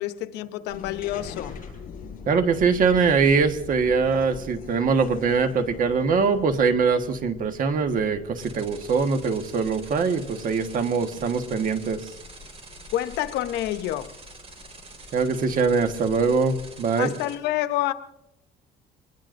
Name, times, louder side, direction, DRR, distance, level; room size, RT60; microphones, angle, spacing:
voice 1, 0.0-1.6 12.9-14.1 17.0-17.9, left 13 dB, 85° left, 11 dB, 0.9 m, -28 dB
sound 1, 0.7-16.9, left 5 dB, 55° left, 7.7 m, -44 dB
voice 2, 2.3-12.1 15.1-17.1, right 5 dB, 55° right, 7 dB, 1.4 m, -22 dB
sound 2, 8.4-17.3, right 3 dB, 35° right, 4.3 m, -46 dB
24.5 x 20.0 x 2.6 m, 0.85 s
cardioid pair, 110°, 17 cm